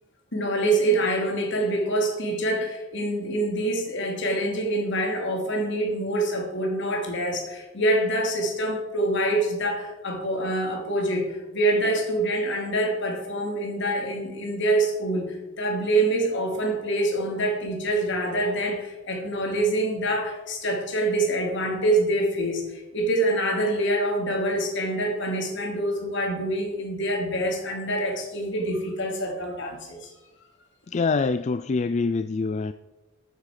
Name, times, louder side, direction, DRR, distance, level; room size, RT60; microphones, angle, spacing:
voice 1, 0.3-30.1, right 1 dB, 65° left, 2.9 m, -25 dB
voice 2, 30.9-32.7, left 4 dB, 35° left, 0.3 m, -25 dB
13.5 x 9.3 x 5.0 m
head